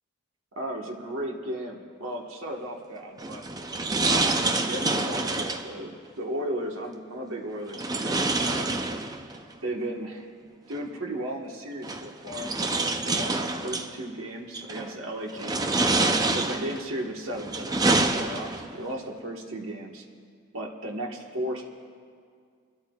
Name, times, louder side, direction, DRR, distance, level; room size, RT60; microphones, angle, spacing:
voice 1, 0.5-3.4 4.0-8.7 9.6-10.3 10.7-12.6 13.0-15.8 16.3-20.0 20.5-21.6, right 1 dB, 75° right, 0 dB, 1.4 m, -35 dB
sound 1, 3.2-5.7 7.7-9.4 10.7-10.8 11.8-13.9 14.5-14.9 15.4-16.8 17.3-18.7, right 2 dB, 20° right, 0.5 m, -27 dB
26.5 x 13.0 x 2.4 m, 2.1 s
head